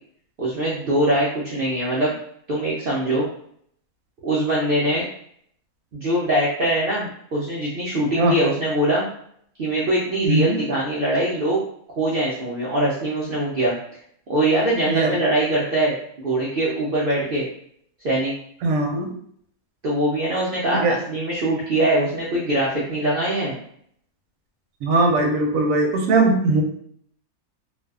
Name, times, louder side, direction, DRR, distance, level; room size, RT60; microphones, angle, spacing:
voice 1, 0.4-2.1 2.5-3.3 4.2-5.0 5.9-9.1 9.6-11.6 12.0-13.7 14.3-15.9 16.2-17.5 18.0-18.3 19.8-23.6, right 1 dB, 90° right, -6 dB, 0.4 m, -22 dB
voice 2, 10.2-10.6 14.9-15.3 18.6-19.1 20.8-21.0 24.8-26.6, right 2 dB, 70° right, 1 dB, 0.9 m, -20 dB
2.6 x 2.3 x 2.3 m, 0.66 s
omnidirectional pair, 1.6 m